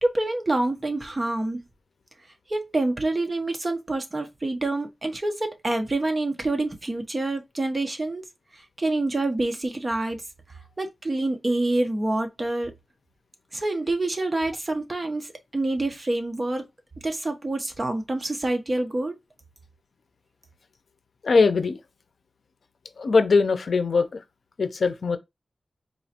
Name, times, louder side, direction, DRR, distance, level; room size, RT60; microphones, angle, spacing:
voice 1, 0.0-1.6 2.5-8.2 8.8-10.2 10.8-12.7 13.5-16.7 17.0-19.2, right 2 dB, 30° right, 0.8 m, -27 dB
voice 2, 21.2-21.8 23.0-24.2 24.6-25.2, left 4 dB, 70° left, 0.5 m, -21 dB
3.9 x 3.0 x 2.8 m
wide cardioid pair, 115°, 0 cm